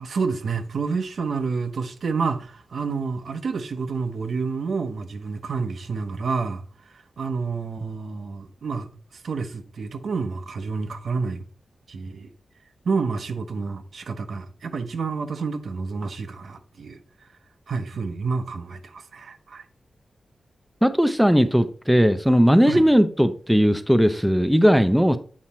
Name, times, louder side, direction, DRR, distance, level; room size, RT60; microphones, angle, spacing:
voice 1, 0.0-11.4 11.9-12.3 12.8-17.0 17.7-19.6 22.7-22.8, right 4 dB, 65° right, 0.8 m, -29 dB
voice 2, 20.8-25.2, equal, ahead, 0.4 m, -18 dB
7.4 x 4.9 x 4.2 m
wide cardioid pair, 155°, 0 cm